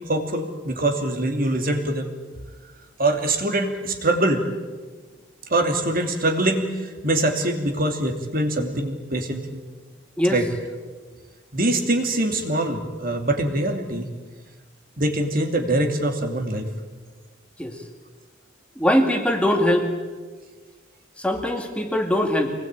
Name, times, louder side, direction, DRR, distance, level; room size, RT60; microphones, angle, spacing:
voice 1, 0.1-2.1 3.0-4.4 5.5-9.6 10.3-10.5 11.5-14.1 15.0-16.7, right 1 dB, 45° right, 4 dB, 2.8 m, -23 dB
voice 2, 18.8-19.9 21.2-22.5, left 1 dB, 5° left, 4 dB, 2.2 m, -21 dB
25.5 x 20.0 x 9.1 m, 1.4 s
head